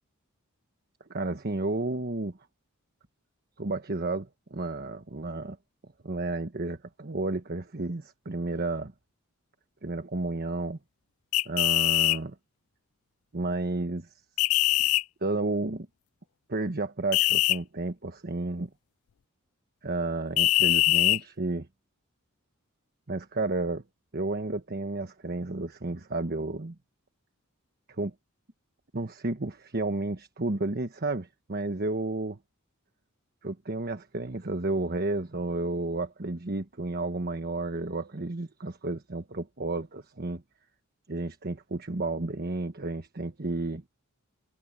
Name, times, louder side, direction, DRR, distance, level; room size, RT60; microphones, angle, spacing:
voice 1, 1.1-2.4 3.6-5.6 6.0-8.9 9.8-10.8 11.4-12.3 13.3-14.1 15.2-15.9 16.5-18.7 19.8-21.7 23.1-23.8 24.1-26.7 27.9-28.1 28.9-32.4 33.4-40.4 41.1-43.8, right 2 dB, 45° right, 1.3 m, -32 dB
sound 1, 11.3-12.2 14.4-15.0 17.1-17.6 20.4-21.2, left 18 dB, 75° left, 0.4 m, -22 dB
head